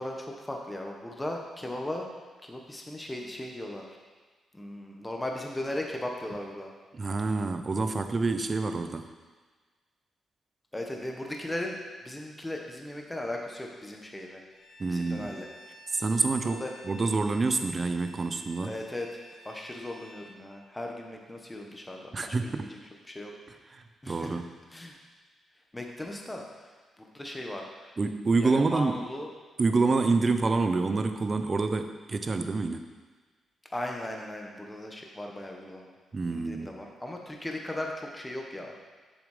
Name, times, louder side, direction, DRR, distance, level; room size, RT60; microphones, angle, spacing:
voice 1, 0.0-2.1 2.4-3.8 4.5-6.7 10.7-11.8 12.0-14.4 14.8-15.5 16.4-16.7 18.6-19.2 19.4-22.1 22.4-22.8 23.1-23.3 24.0-24.4 24.7-25.0 25.7-26.7 27.0-27.9 28.4-29.3 33.7-35.9 36.3-38.7, left 1 dB, 10° left, 1 dB, 1.3 m, -37 dB
voice 2, 6.9-9.1 14.8-15.4 15.9-18.8 22.1-22.7 23.7-24.5 28.0-29.0 29.6-32.9 36.1-36.7, right 3 dB, 30° right, 8 dB, 0.7 m, -27 dB
Bowed string instrument, 14.5-20.4, equal, 55° left, 0.9 m, -51 dB
7.3 x 7.1 x 5.1 m, 1.4 s
cardioid pair, 105°, 0 cm